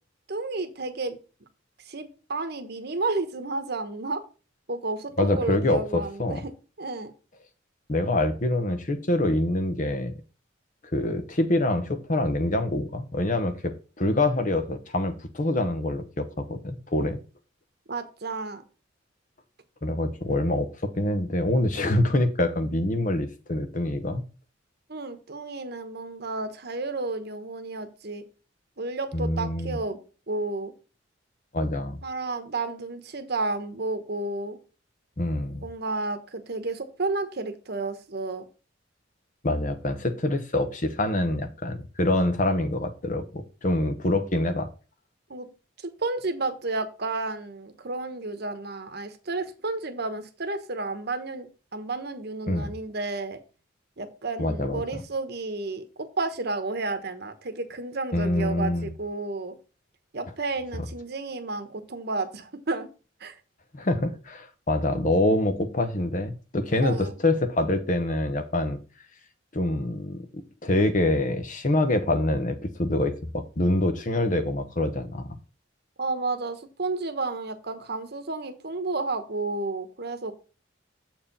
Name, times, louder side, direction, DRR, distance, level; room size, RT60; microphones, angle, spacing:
voice 1, 0.3-1.2 1.9-4.2 4.7-6.5 6.8-7.1 17.9-18.6 24.9-28.2 28.8-30.0 30.3-30.7 32.0-34.6 35.6-38.5 45.3-45.5 46.0-53.4 54.0-59.6 60.1-62.9 63.2-63.4 66.8-67.1 76.0-80.3, right 3 dB, 55° right, 8 dB, 1.1 m, -31 dB
voice 2, 5.2-6.4 7.9-10.1 10.9-17.2 19.8-24.2 29.1-29.8 31.5-32.0 35.2-35.7 39.4-44.7 52.5-52.7 54.4-55.0 58.1-58.9 63.7-68.8 69.5-70.3 70.6-75.3, left 1 dB, 40° left, 9 dB, 0.9 m, -25 dB
7.3 x 4.6 x 5.3 m, 0.35 s
head